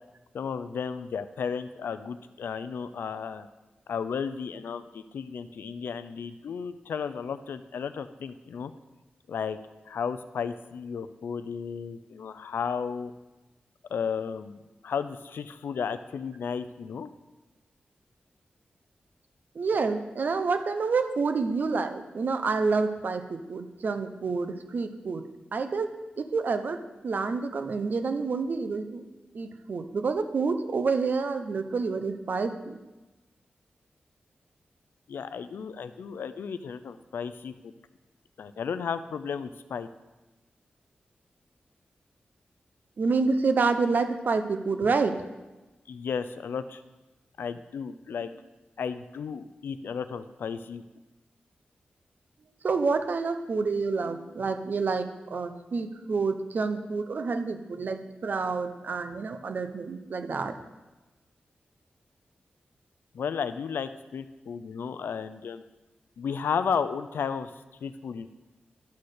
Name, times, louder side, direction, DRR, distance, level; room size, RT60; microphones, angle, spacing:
voice 1, 0.3-3.5 3.9-8.7 9.3-9.6 9.9-13.1 13.9-14.6 14.8-17.1 35.1-37.7 38.4-39.9 45.9-46.8 47.4-48.3 48.8-50.8 63.1-65.6 66.2-67.5 67.8-68.3, left 6 dB, 90° left, 12 dB, 0.5 m, -33 dB
voice 2, 19.5-25.2 25.5-29.0 29.3-32.8 43.0-45.1 52.6-60.6, right 4 dB, 60° right, 8 dB, 0.7 m, -28 dB
11.5 x 4.3 x 6.5 m, 1.1 s
wide cardioid pair, 100°, 3 cm